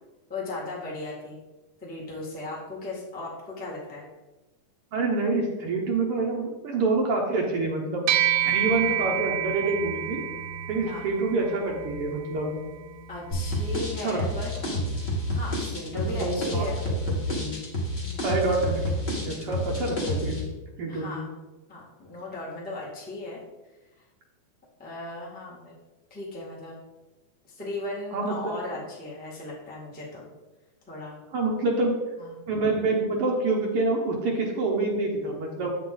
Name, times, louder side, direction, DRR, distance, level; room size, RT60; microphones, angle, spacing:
voice 1, 0.3-1.4 1.8-4.0 8.4-8.6 10.8-11.0 13.1-14.5 15.3-16.8 17.9-18.2 20.9-21.2 21.7-23.4 24.8-25.7 26.1-26.7 27.5-30.2 30.9-31.1 32.2-32.3, left 2 dB, 5° left, -6 dB, 0.9 m, -36 dB
voice 2, 4.9-8.1 8.5-10.2 10.7-12.5 14.0-14.2 14.7-14.9 15.9-17.5 18.2-18.9 19.2-20.4 20.8-21.2 28.1-28.5 31.3-31.9 32.5-35.8, right 3 dB, 70° right, -1 dB, 1.3 m, -27 dB
sound 1, 8.1-17.7, right 11 dB, 85° right, 2.2 m, -31 dB
sound 2, 13.3-20.4, equal, 30° left, 1.1 m, -29 dB
8.3 x 5.7 x 3.9 m, 1.1 s
omnidirectional pair, 3.7 m